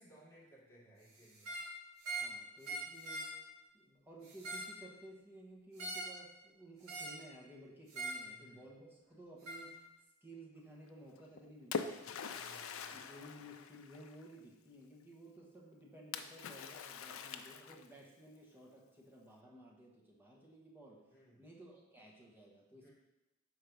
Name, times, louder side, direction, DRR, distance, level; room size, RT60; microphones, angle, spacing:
voice 1, 0.0-1.5 8.2-8.6 12.1-12.9 21.1-21.4 22.8-22.9, right 1 dB, 15° left, -8 dB, 1.9 m, -62 dB
sound 1, 1.3-1.7 2.0-2.3 2.6-3.3 4.2-4.8 5.8-6.2 6.9-7.2 7.9-8.2 9.4-9.6, right 2 dB, 80° right, 1.7 m, -42 dB
voice 2, 2.2-3.4 3.7-9.8 10.2-12.0 12.9-21.1 21.4-22.9, right 1 dB, 10° right, -3 dB, 1.1 m, -56 dB
Splash splatter, 11.1-14.3 16.1-18.1, left 5 dB, 80° left, 0.4 m, -44 dB
4.7 x 4.2 x 5.2 m, 0.97 s
head